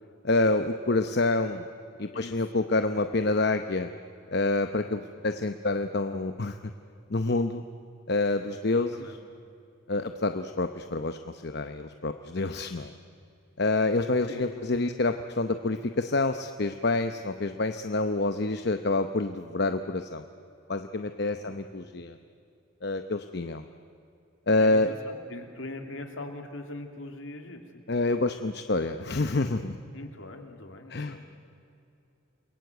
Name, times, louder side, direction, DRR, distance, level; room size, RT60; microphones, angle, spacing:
voice 1, 0.2-1.6 2.0-3.9 4.3-6.6 7.1-7.6 8.1-8.9 9.9-12.9 13.6-20.2 20.7-22.2 22.8-23.6 24.5-24.9 27.9-29.8 30.9-31.1, left 2 dB, 55° left, 8 dB, 0.8 m, -27 dB
voice 2, 8.6-9.2 14.3-14.5 21.2-21.5 24.6-27.8 29.9-31.2, left 2 dB, 70° left, 4 dB, 2.8 m, -41 dB
28.5 x 22.0 x 8.0 m, 2.6 s
head